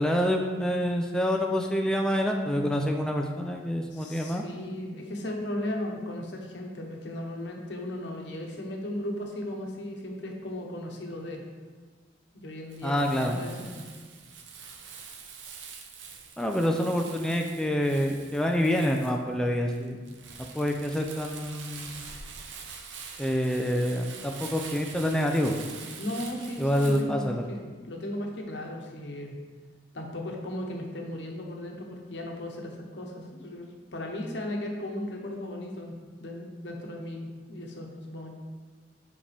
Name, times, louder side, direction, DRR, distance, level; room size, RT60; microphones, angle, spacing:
voice 1, 0.0-4.4 12.8-13.4 16.4-20.2 20.5-22.0 23.2-25.5 26.6-27.4, equal, 5° left, 2 dB, 0.4 m, -27 dB
voice 2, 3.9-11.5 12.3-13.9 26.0-29.4 29.9-35.9 36.2-38.3, left 1 dB, 70° left, 1 dB, 1.1 m, -36 dB
Crumpling crinkling, 12.7-27.0, right 5 dB, 90° right, 0.8 m, -45 dB
7.4 x 5.2 x 3.4 m, 1.4 s
head